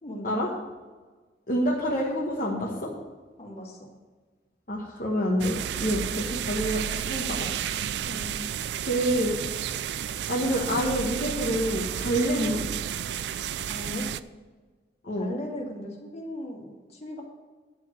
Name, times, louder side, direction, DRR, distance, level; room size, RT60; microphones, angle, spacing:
voice 1, 0.0-0.4 3.4-3.9 6.2-6.4 8.1-8.4 12.3-12.7 13.7-14.1 15.1-17.2, left 1 dB, 35° left, -2 dB, 2.1 m, -37 dB
voice 2, 1.5-2.9 4.7-6.8 7.1-7.5 7.8-7.9 8.9-9.4 10.3-12.6 15.0-15.3, equal, 50° left, -4 dB, 1.3 m, -27 dB
sound 1, 5.4-14.2, right 9 dB, 70° right, 0.3 m, -32 dB
10.5 x 4.9 x 7.8 m, 1.4 s
head